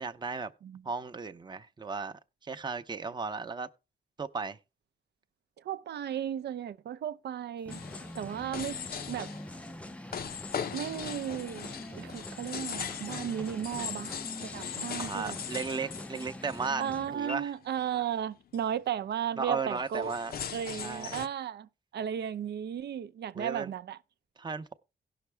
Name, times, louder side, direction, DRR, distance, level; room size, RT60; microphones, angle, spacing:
voice 1, 0.0-0.5 0.8-3.7 4.2-4.6 15.0-16.8 17.1-17.5 19.4-20.3 20.7-21.2 23.3-23.7 24.4-24.7, right 4 dB, 25° right, 0.7 m, -35 dB
voice 2, 5.6-7.8 8.1-8.8 9.1-9.3 10.7-15.4 16.8-20.1 20.5-24.0, right 9 dB, 70° right, 0.6 m, -35 dB
sound 1, 7.7-17.1 17.5-17.8 18.2-18.3 18.5-18.8 19.7-21.3, left 8 dB, 60° left, 0.6 m, -40 dB
sound 2, 7.7-17.4, left 1 dB, 5° left, 0.4 m, -44 dB
17.0 x 5.9 x 3.3 m
cardioid pair, 105°, 18 cm